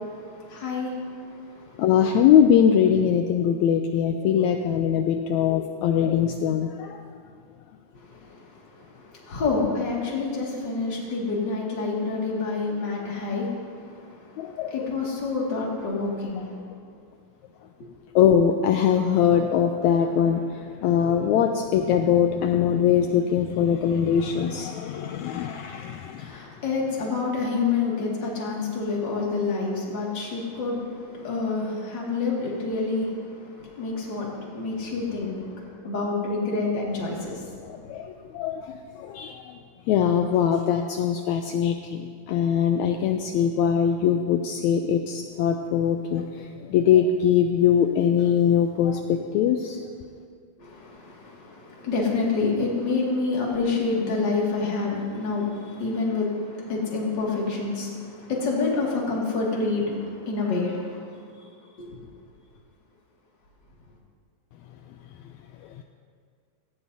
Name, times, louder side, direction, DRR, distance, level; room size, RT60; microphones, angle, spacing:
voice 1, 0.5-0.9 9.3-13.5 14.7-16.5 26.2-33.1 33.6-35.4 35.8-37.5 50.6-61.0 61.8-61.9, left 3 dB, 35° left, -3 dB, 2.5 m, -27 dB
voice 2, 1.8-7.0 14.4-14.9 16.4-16.5 18.1-26.3 37.7-39.4 39.9-49.8, left 8 dB, 80° left, 5 dB, 1.7 m, -22 dB
17.5 x 15.0 x 2.7 m, 2.1 s
omnidirectional pair, 3.7 m